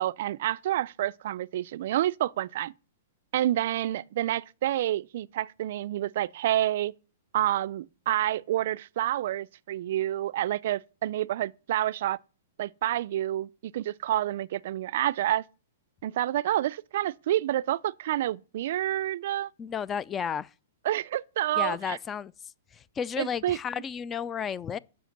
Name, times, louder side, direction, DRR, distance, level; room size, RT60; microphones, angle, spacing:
voice 1, 0.0-2.7 3.3-6.9 7.3-12.2 12.6-15.4 16.0-19.5 20.8-22.0 23.2-23.6, right 13 dB, 60° right, 0.3 m, -28 dB
voice 2, 19.6-20.5 21.6-22.3 22.7-24.8, left 7 dB, 20° left, 0.3 m, -32 dB
7.7 x 5.7 x 6.5 m
hypercardioid pair, 135°, 0 cm